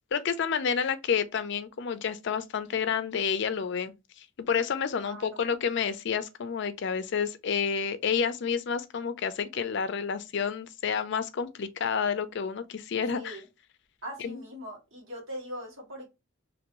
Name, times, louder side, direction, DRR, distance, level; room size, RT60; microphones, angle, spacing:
voice 1, 0.1-13.4 14.2-14.4, left 6 dB, 60° left, 0.4 m, -30 dB
voice 2, 5.0-5.4 13.1-13.5 14.0-16.1, equal, 85° right, 1.7 m, -41 dB
3.0 x 2.6 x 3.0 m
head